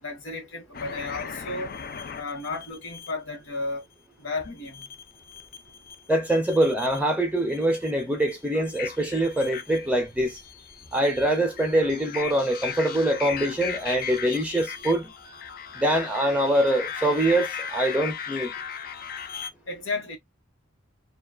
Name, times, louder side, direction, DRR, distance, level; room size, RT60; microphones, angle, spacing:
voice 1, 0.0-1.7 2.1-3.8 4.2-4.8 19.7-20.2, left 3 dB, 80° left, 1.0 m, -33 dB
sound 1, 0.7-3.1 4.7-6.0 6.3-7.1 7.5-19.5, left 7 dB, 50° left, 0.4 m, -37 dB
voice 2, 6.1-10.4 10.9-15.1 15.7-18.5, right 1 dB, 5° right, 0.5 m, -24 dB
2.5 x 2.2 x 2.4 m
head